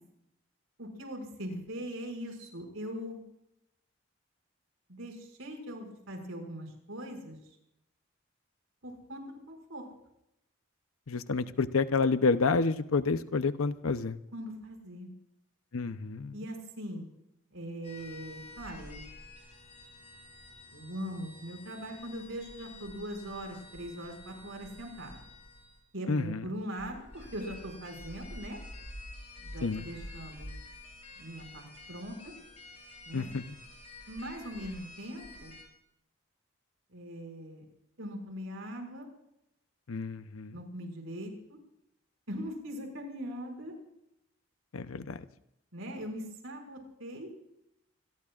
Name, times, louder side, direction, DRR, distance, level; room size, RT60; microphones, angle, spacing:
voice 1, 0.8-3.2 4.9-7.5 8.8-9.8 14.3-15.1 16.3-17.1 17.5-19.0 20.7-25.2 25.9-28.6 29.4-30.5 31.2-32.3 33.1-33.3 34.1-35.6 36.9-37.6 38.0-39.1 40.5-41.6 42.3-43.8 45.7-47.3, equal, 75° right, 2 dB, 6.0 m, -41 dB
voice 2, 11.1-14.2 15.7-16.3 26.1-26.4 29.6-29.9 33.1-33.4 39.9-40.6 44.7-45.2, left 4 dB, 90° left, 11 dB, 0.8 m, -29 dB
sound 1, 17.8-25.8 26.8-35.6, left 1 dB, 30° left, 6.8 m, -49 dB
26.0 x 22.0 x 2.5 m, 0.80 s
head